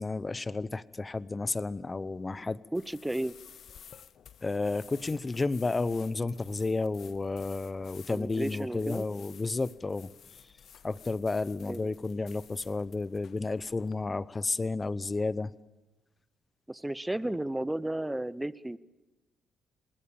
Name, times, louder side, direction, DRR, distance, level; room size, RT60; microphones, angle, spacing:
voice 1, 0.0-2.6 4.4-10.1 10.8-15.5, left 3 dB, 25° left, 18 dB, 0.9 m, -32 dB
sound 1, 2.7-13.9, left 8 dB, 60° left, 0.9 m, -54 dB
voice 2, 2.7-3.4 8.1-9.0 11.7-11.8 16.7-18.8, right 1 dB, 10° right, 17 dB, 0.8 m, -33 dB
27.5 x 20.5 x 7.4 m, 1.1 s
cardioid pair, 90°, 0 cm